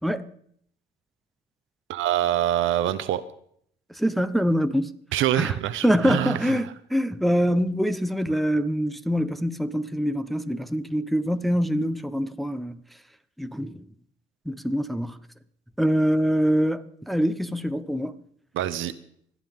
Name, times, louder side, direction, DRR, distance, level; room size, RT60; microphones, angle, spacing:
voice 1, 1.9-3.2 5.1-6.6 18.5-18.9, right 12 dB, 80° right, 0.9 m, -25 dB
voice 2, 3.9-4.9 5.4-5.5 5.8-12.8 13.4-13.9 14.5-15.2 15.8-18.2, equal, ahead, 0.8 m, -24 dB
25.5 x 9.7 x 3.6 m
cardioid pair, 90°, 20 cm